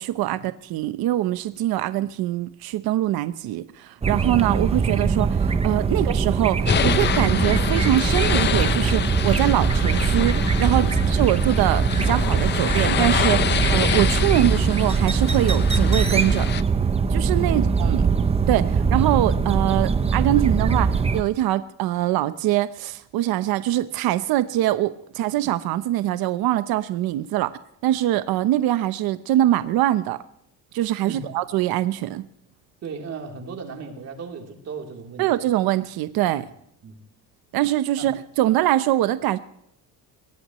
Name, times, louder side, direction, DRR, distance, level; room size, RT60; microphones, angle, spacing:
voice 1, 0.0-16.5 17.1-18.0 18.5-27.5 27.8-30.2 30.7-32.2 35.2-36.5 37.5-39.4, right 14 dB, 70° right, 12 dB, 0.9 m, -23 dB
sound 1, 4.0-21.2, right 5 dB, 15° right, 0.6 m, -22 dB
sound 2, 6.7-16.6, left 9 dB, 30° left, 0.5 m, -27 dB
voice 2, 32.8-35.3 36.8-37.0 38.0-38.1, right 5 dB, 40° right, 2 dB, 3.4 m, -36 dB
22.5 x 17.5 x 3.1 m, 0.72 s
cardioid pair, 165°, 38 cm